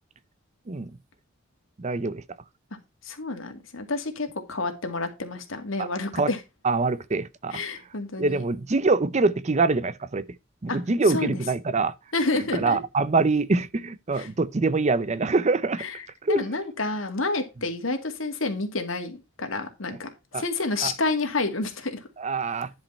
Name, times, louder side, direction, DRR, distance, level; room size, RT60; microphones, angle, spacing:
voice 1, 1.8-2.2 5.8-5.9 6.1-6.3 6.6-7.6 8.2-10.2 10.6-11.9 12.5-15.8 16.2-16.4 20.3-20.4 20.8-20.9 22.2-22.7, right 3 dB, 35° right, 0.6 m, -24 dB
voice 2, 3.0-6.4 7.5-8.4 10.7-10.8 11.1-11.4 12.1-12.8 14.1-14.3 15.8-22.1, left 3 dB, 80° left, 2.1 m, -29 dB
10.5 x 5.2 x 4.2 m
head